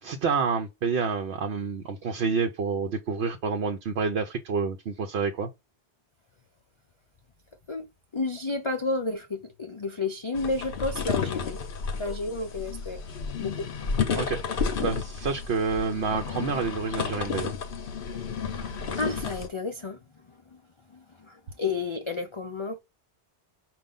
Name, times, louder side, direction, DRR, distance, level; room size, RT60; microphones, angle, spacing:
voice 1, 0.0-5.5 14.1-17.5, right 5 dB, 70° right, 1.0 m, -28 dB
voice 2, 8.1-11.6 12.0-13.0 13.4-13.7 18.4-20.6 20.9-22.8, left 3 dB, 40° left, 0.4 m, -32 dB
sound 1, 10.3-19.5, left 6 dB, 55° left, 0.9 m, -32 dB
5.2 x 2.5 x 3.7 m
omnidirectional pair, 1.2 m